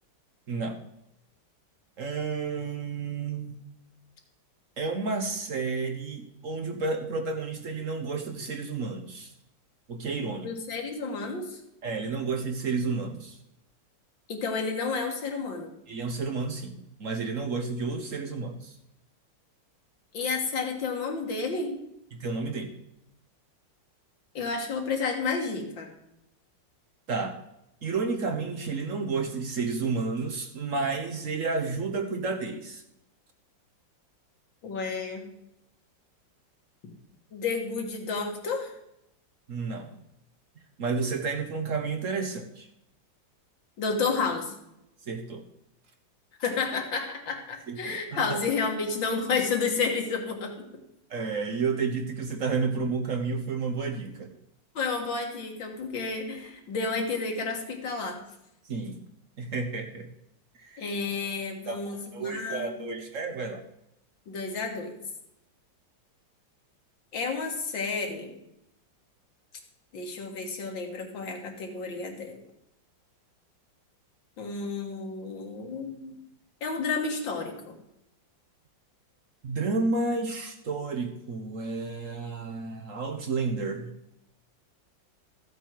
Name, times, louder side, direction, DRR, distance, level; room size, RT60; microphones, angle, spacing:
voice 1, 0.5-0.8 2.0-3.6 4.8-9.3 9.9-10.5 11.8-13.4 15.9-18.8 22.1-22.7 27.1-27.4 27.8-32.8 39.5-40.0 40.8-42.7 45.0-45.5 47.7-48.3 51.1-54.3 58.6-59.1 59.4-60.1 60.6-60.8 61.7-63.6 79.4-83.9, right 4 dB, 50° right, 6 dB, 1.2 m, -31 dB
voice 2, 10.4-11.6 14.3-15.7 20.1-21.8 24.3-25.9 34.6-35.2 37.3-38.7 43.8-44.6 46.4-50.7 54.7-58.2 60.8-63.0 64.3-64.9 67.1-68.3 69.9-72.4 74.4-76.2 76.6-77.8, left 4 dB, 85° left, 2 dB, 2.4 m, -31 dB
14.0 x 8.1 x 4.7 m, 0.82 s
omnidirectional pair, 2.0 m